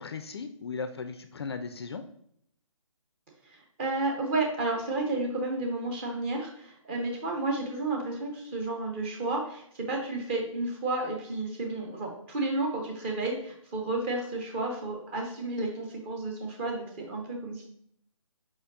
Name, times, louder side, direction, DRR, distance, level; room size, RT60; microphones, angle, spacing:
voice 1, 0.0-2.0, left 5 dB, 50° left, 9 dB, 0.4 m, -37 dB
voice 2, 3.5-17.7, right 2 dB, 20° right, 0 dB, 0.8 m, -32 dB
4.8 x 4.3 x 2.5 m, 0.67 s
figure-of-eight pair, 145°, 18 cm